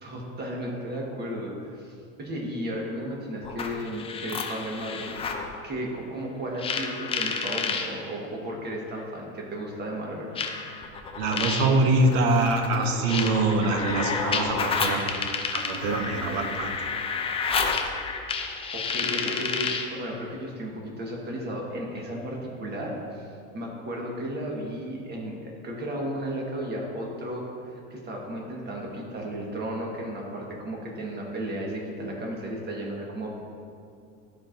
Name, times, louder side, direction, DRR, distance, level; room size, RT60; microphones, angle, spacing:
voice 1, 0.0-10.3 18.7-33.3, equal, 25° right, -1 dB, 1.5 m, -34 dB
sound 1, 3.4-5.5 6.6-7.9 9.0-9.1 10.4-19.9, left 5 dB, 15° left, 0.3 m, -30 dB
voice 2, 11.2-16.7, right 2 dB, 70° right, 4 dB, 0.9 m, -24 dB
12.5 x 4.6 x 2.6 m, 2.5 s
supercardioid pair, 120°, 41 cm